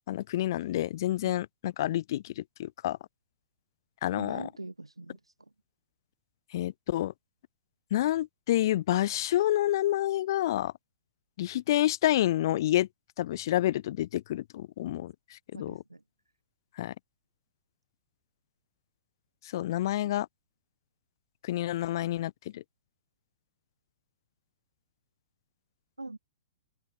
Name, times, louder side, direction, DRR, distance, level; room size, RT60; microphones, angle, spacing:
voice 1, 0.1-3.0 4.0-4.5 6.5-7.1 7.9-10.7 11.4-12.9 13.2-15.8 16.8-16.9 19.5-20.3 21.4-22.6, left 13 dB, 50° left, 2.2 m, -28 dB
voice 2, 4.1-5.3 15.5-16.0 26.0-26.2, right 2 dB, 90° right, 5.5 m, -42 dB
open air
figure-of-eight pair, 115°, 3 cm